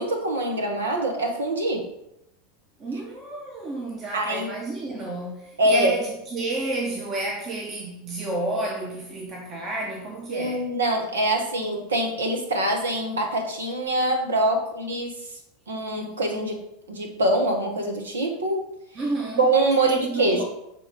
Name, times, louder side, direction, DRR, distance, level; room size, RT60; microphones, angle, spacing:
voice 1, 0.0-1.9 4.1-4.5 5.6-5.9 10.3-15.2 15.7-16.6 16.9-18.6 19.4-20.4, right 1 dB, 80° right, 1.2 m, -24 dB
voice 2, 2.8-10.6 18.9-19.5 19.8-20.4, right 2 dB, 35° right, 1.2 m, -31 dB
6.7 x 3.8 x 4.2 m
figure-of-eight pair, 85°, 0 cm